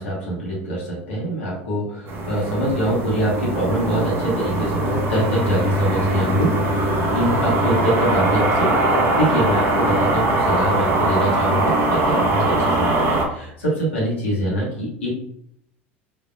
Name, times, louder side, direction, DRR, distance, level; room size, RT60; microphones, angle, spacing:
voice 1, 0.0-15.1, equal, 70° left, -5 dB, 1.2 m, -24 dB
sound 1, 2.1-13.2, right 2 dB, 40° right, 0.8 m, -21 dB
4.1 x 2.7 x 2.2 m, 0.72 s
figure-of-eight pair, 70°, 7 cm